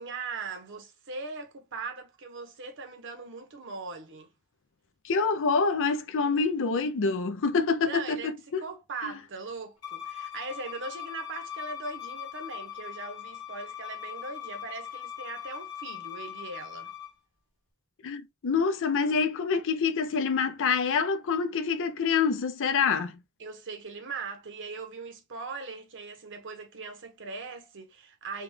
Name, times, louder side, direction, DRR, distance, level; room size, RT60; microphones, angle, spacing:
voice 1, 0.0-4.3 6.2-6.5 7.8-8.3 8.6-16.9 23.4-28.4, right 4 dB, 60° right, 0.9 m, -40 dB
voice 2, 5.0-8.7 9.0-9.1 18.0-23.2, left 5 dB, 60° left, 0.5 m, -26 dB
Bowed string instrument, 9.8-17.1, left 10 dB, 85° left, 1.4 m, -40 dB
3.4 x 2.3 x 3.1 m
head